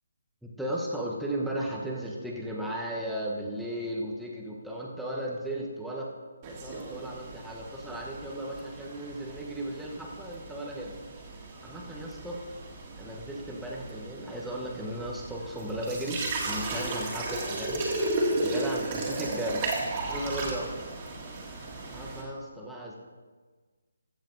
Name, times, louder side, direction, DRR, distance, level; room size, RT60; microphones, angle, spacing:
voice 1, 0.4-6.1 6.5-11.0 11.6-12.4 13.0-17.8 18.4-20.7 21.9-23.0, right 1 dB, ahead, -4 dB, 1.1 m, -35 dB
sound 1, 6.4-22.2, right 2 dB, 25° right, 2.1 m, -35 dB
15.0 x 7.1 x 3.9 m, 1.4 s
hypercardioid pair, 160°, 0 cm